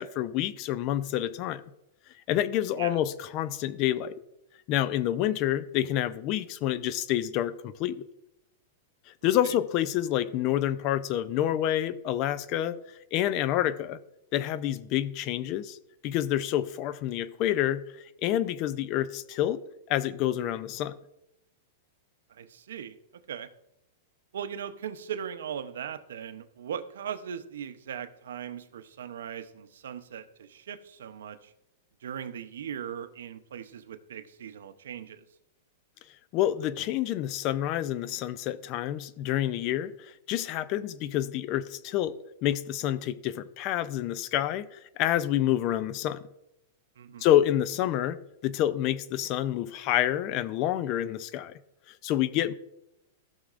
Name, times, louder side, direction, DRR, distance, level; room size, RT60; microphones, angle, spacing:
voice 1, 0.0-1.6 2.3-4.1 4.7-8.1 9.2-12.8 13.1-14.0 14.3-15.8 16.0-19.6 19.9-20.9 36.3-42.1 42.4-46.2 47.2-51.5 52.0-52.5, left 12 dB, 40° left, 0.5 m, -28 dB
voice 2, 9.2-9.5 22.3-23.0 23.3-23.5 24.3-31.5 32.0-35.2 47.0-47.3, right 8 dB, 85° right, 0.7 m, -39 dB
14.5 x 6.4 x 2.5 m
supercardioid pair, 145°, 0 cm